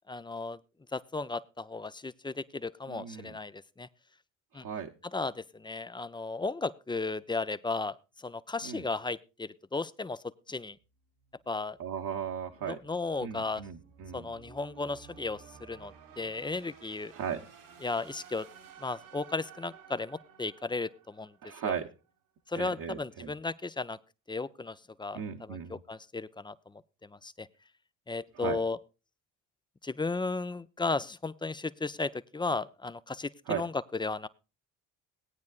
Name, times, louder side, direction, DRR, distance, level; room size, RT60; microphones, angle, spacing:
voice 1, 0.1-0.6 0.9-3.9 4.5-4.7 5.1-10.8 11.5-11.8 12.6-13.6 14.1-17.1 17.8-18.5 18.8-21.7 22.5-24.0 24.3-27.5 28.1-28.8 29.8-34.3, left 3 dB, 10° left, 15 dB, 0.5 m, -35 dB
voice 2, 2.9-3.4 4.5-4.9 8.6-8.8 11.8-12.8 13.2-14.3 17.1-17.4 21.4-21.9 22.5-23.3 25.1-25.8 28.3-28.6 33.5-33.7, right 8 dB, 55° right, 1 dB, 1.2 m, -37 dB
sound 1, 10.8-21.8, right 7 dB, 75° right, 1.9 m, -55 dB
17.5 x 9.4 x 2.5 m, 0.30 s
hypercardioid pair, 55°, 41 cm